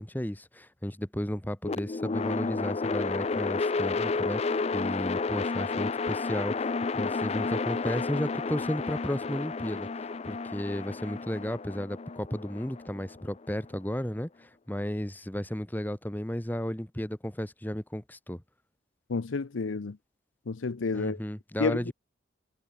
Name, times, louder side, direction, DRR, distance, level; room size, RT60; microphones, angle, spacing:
voice 1, 0.0-9.9 10.2-18.4 20.9-21.9, equal, 10° left, 1.2 m, -34 dB
sound 1, 1.6-13.8, left 4 dB, 30° left, 0.4 m, -31 dB
voice 2, 19.1-20.0 20.5-21.2 21.6-21.9, left 4 dB, 75° left, 0.6 m, -30 dB
head